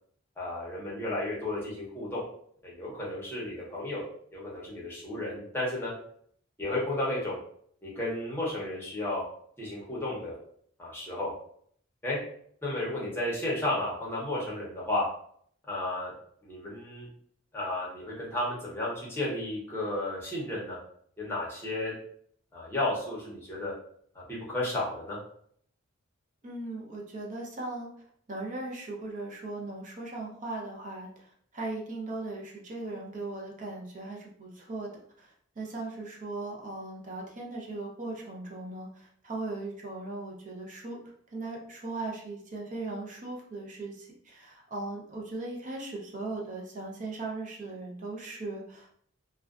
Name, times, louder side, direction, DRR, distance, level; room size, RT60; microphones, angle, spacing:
voice 1, 0.4-2.2 2.6-4.0 4.3-5.9 6.6-7.4 7.8-9.2 9.6-10.4 10.8-11.3 12.0-12.2 12.6-15.0 15.7-16.1 16.4-17.1 17.5-20.8 21.2-21.9 22.5-23.7 24.1-25.2, left 1 dB, 10° left, -6 dB, 0.8 m, -33 dB
voice 2, 26.4-27.9 28.3-31.1 31.5-34.9 35.2-35.3 35.6-41.0 41.3-48.9, right 2 dB, 40° right, -2 dB, 0.6 m, -38 dB
2.4 x 2.2 x 2.4 m, 0.63 s
head